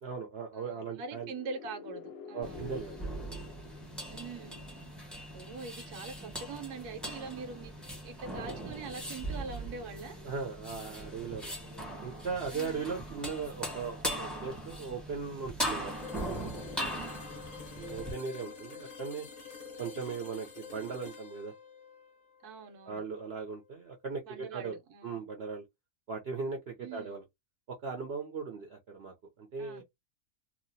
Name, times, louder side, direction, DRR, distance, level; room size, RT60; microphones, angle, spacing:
voice 1, 0.0-1.3 2.3-3.0 10.2-11.5 12.0-15.9 17.8-19.3 19.8-21.5 22.9-24.8 25.0-25.6 26.1-27.2 27.7-29.8, right 5 dB, 55° right, 0.8 m, -38 dB
voice 2, 0.6-2.7 4.1-4.7 5.3-10.2 12.5-12.9 16.9-17.3 22.4-23.0 24.2-25.3 26.8-27.2 29.6-29.8, right 4 dB, 80° right, 1.4 m, -44 dB
sound 1, 1.0-4.8, left 7 dB, 75° left, 0.5 m, -49 dB
sound 2, 2.4-18.1, right 1 dB, ahead, 0.8 m, -40 dB
sound 3, 15.8-23.6, left 6 dB, 35° left, 0.8 m, -48 dB
2.9 x 2.4 x 2.6 m
omnidirectional pair, 1.6 m